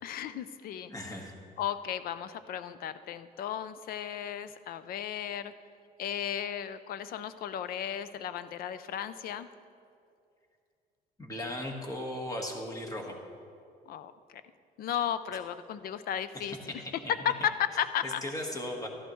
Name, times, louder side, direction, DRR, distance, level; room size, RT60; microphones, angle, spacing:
voice 1, 0.0-0.9 1.6-5.5 6.0-9.5 13.9-14.1 14.8-16.8 17.1-18.2, left 9 dB, 60° left, 13 dB, 0.5 m, -34 dB
voice 2, 0.9-1.3 11.2-13.1 16.3-16.6 17.0-17.1 18.0-18.9, left 1 dB, 20° left, 1 dB, 1.5 m, -37 dB
13.0 x 11.5 x 3.1 m, 2.4 s
cardioid pair, 110°, 17 cm